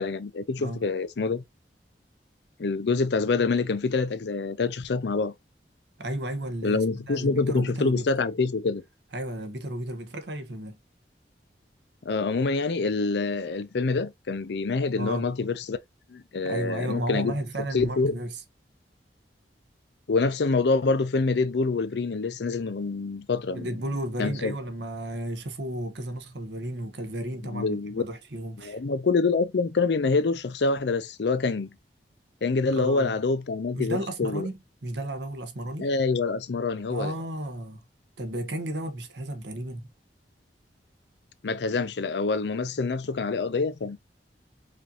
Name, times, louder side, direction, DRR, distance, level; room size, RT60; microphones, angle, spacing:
voice 1, 0.0-1.4 2.6-5.3 6.6-8.8 12.0-15.8 16.1-17.3 17.7-18.2 20.1-23.7 24.2-24.5 27.4-28.0 28.6-31.7 32.4-34.5 35.8-37.1 41.4-44.0, left 4 dB, 75° left, 0.5 m, -26 dB
voice 2, 6.0-8.1 9.1-10.8 15.0-15.3 16.4-18.4 23.5-28.8 32.7-33.1 33.7-35.9 36.9-37.8 38.2-39.9, right 1 dB, 80° right, 1.0 m, -33 dB
5.0 x 2.6 x 2.8 m
head